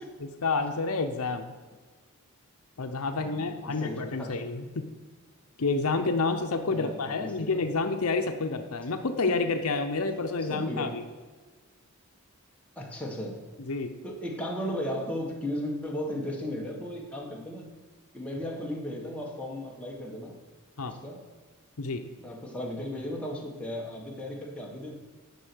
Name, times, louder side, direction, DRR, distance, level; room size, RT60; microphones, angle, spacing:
voice 1, 0.2-1.5 2.8-4.9 5.6-11.0 13.6-13.9 20.8-20.9 21.8-22.0, left 3 dB, 70° left, 6 dB, 0.7 m, -29 dB
voice 2, 3.2-4.4 6.7-7.6 9.3-9.4 10.4-11.0 12.7-13.5 14.0-17.7 18.1-20.4 20.9-21.3 22.2-24.9, left 1 dB, 5° left, -2 dB, 1.5 m, -36 dB
10.0 x 5.6 x 6.2 m, 1.4 s
head